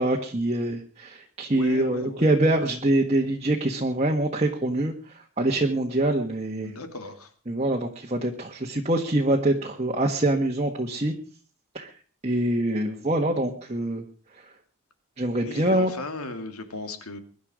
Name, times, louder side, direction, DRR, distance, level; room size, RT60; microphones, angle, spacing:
voice 1, 0.0-4.9 5.4-6.7 7.5-11.1 11.7-11.9 12.2-14.0 15.2-15.9, right 1 dB, 30° right, 1 dB, 1.4 m, -24 dB
voice 2, 1.5-2.3 6.6-7.3 15.4-17.2, left 2 dB, 85° left, 7 dB, 2.6 m, -36 dB
22.5 x 11.0 x 5.0 m, 0.40 s
head